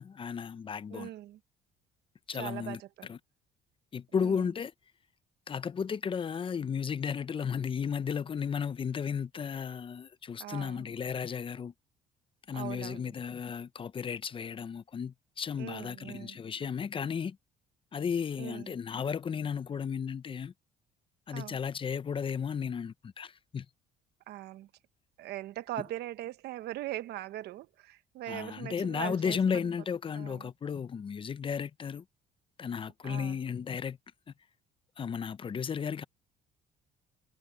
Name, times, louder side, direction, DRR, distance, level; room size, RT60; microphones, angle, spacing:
voice 1, 0.0-1.1 2.3-3.2 3.9-4.7 5.5-11.7 12.5-17.4 17.9-20.5 21.3-23.7 28.3-32.0 32.6-34.0 35.0-36.0, left 6 dB, 30° left, 0.6 m, -34 dB
voice 2, 0.9-1.4 2.3-3.1 4.2-4.4 10.4-10.9 12.5-13.1 15.6-16.4 18.4-18.8 21.3-21.6 24.3-24.7 25.2-29.7 30.1-30.5 33.0-33.4, right 14 dB, 75° right, 1.0 m, -41 dB
cardioid pair, 110°, 17 cm